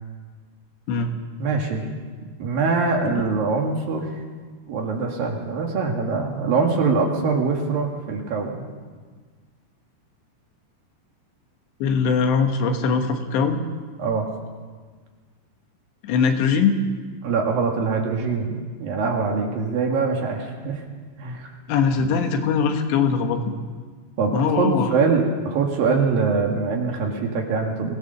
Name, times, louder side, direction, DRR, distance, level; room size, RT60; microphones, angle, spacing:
voice 1, 1.4-1.8 2.4-4.2 4.7-8.6 14.0-14.3 17.2-20.8 21.2-21.5 24.2-27.9, right 4 dB, 60° right, 1 dB, 3.2 m, -23 dB
voice 2, 11.8-13.6 16.0-16.8 21.7-23.6 24.3-25.0, left 5 dB, 75° left, 5 dB, 3.5 m, -21 dB
23.0 x 17.5 x 6.8 m, 1.5 s
omnidirectional pair, 5.2 m